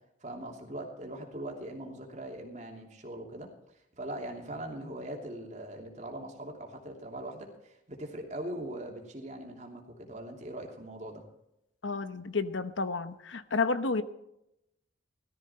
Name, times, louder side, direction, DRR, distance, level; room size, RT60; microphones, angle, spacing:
voice 1, 0.2-3.5 4.0-11.2, right 1 dB, 40° right, 1 dB, 2.9 m, -41 dB
voice 2, 11.8-14.0, left 4 dB, 85° left, 12 dB, 1.0 m, -31 dB
18.0 x 13.5 x 4.4 m, 0.84 s
head